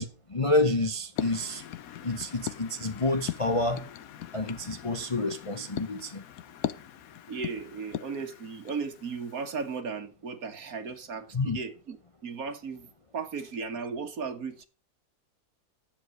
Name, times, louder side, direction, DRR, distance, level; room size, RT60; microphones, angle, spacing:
voice 1, 0.0-1.6 2.0-3.8 4.3-6.2 11.3-11.6, left 2 dB, 30° left, 0.7 m, -28 dB
sound 1, 1.2-9.8, left 11 dB, 65° left, 1.1 m, -40 dB
voice 2, 7.3-12.9 13.1-14.7, right 5 dB, 60° right, 1.8 m, -36 dB
10.5 x 7.6 x 6.5 m
omnidirectional pair, 1.8 m